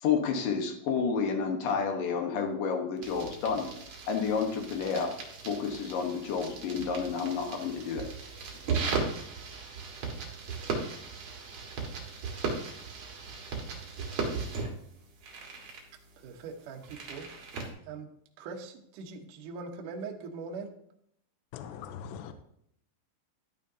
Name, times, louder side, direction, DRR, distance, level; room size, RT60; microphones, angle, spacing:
voice 1, 0.0-3.7 4.1-5.1 5.4-8.0, left 6 dB, 65° left, 3 dB, 2.2 m, -30 dB
sound 1, 3.0-17.7, right 4 dB, 55° right, 2.0 m, -37 dB
voice 2, 16.2-17.6 17.9-18.1 18.4-20.7, right 4 dB, 90° right, 2 dB, 1.8 m, -42 dB
voice 3, 21.5-22.3, left 8 dB, 85° left, 8 dB, 2.7 m, -41 dB
13.5 x 9.3 x 2.8 m, 0.70 s
omnidirectional pair, 5.6 m